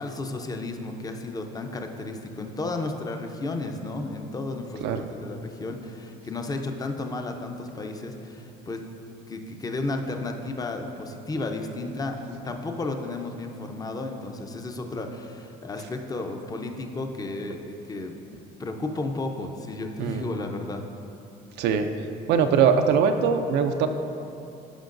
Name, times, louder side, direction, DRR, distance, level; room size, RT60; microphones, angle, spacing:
voice 1, 0.0-8.8 9.3-18.1 18.6-20.8, left 2 dB, 20° left, 4 dB, 0.7 m, -33 dB
voice 2, 21.6-21.9 22.3-23.9, right 6 dB, 85° right, 6 dB, 0.5 m, -21 dB
15.0 x 5.6 x 2.6 m, 2.7 s
cardioid pair, 110°, 17 cm